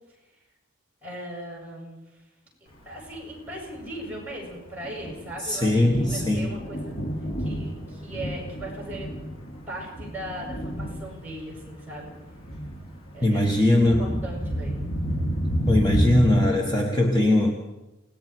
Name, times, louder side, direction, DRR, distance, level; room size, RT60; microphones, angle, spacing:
voice 1, 1.0-2.1 2.8-7.0 7.4-9.1 9.7-12.1 13.1-14.8, right 1 dB, 10° right, -2 dB, 7.4 m, -38 dB
Thunder, 2.9-16.5, equal, 75° left, 3.7 m, -31 dB
voice 2, 5.4-6.6 13.2-14.2 15.7-17.5, left 1 dB, 20° left, 1 dB, 1.5 m, -21 dB
29.5 x 19.0 x 4.7 m, 1.0 s
head